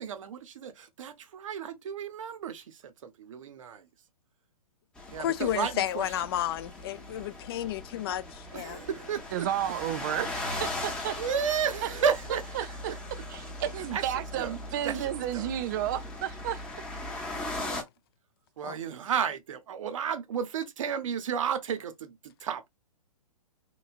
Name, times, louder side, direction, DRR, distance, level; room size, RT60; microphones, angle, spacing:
voice 1, 0.0-3.9 5.1-6.2 7.1-7.3 8.5-9.5 11.2-12.4 12.9-13.0 13.9-14.5 14.8-15.5 18.6-22.7, right 7 dB, 55° right, 0.8 m, -33 dB
sound 1, 4.9-17.8, left 2 dB, 5° left, 0.7 m, -39 dB
voice 2, 5.2-8.8 18.6-18.8, left 12 dB, 40° left, 0.4 m, -32 dB
voice 3, 9.3-11.2 11.8-11.9 12.5-13.0 13.3-16.6, right 11 dB, 30° right, 0.4 m, -32 dB
3.1 x 2.3 x 2.4 m
figure-of-eight pair, 120°, 19 cm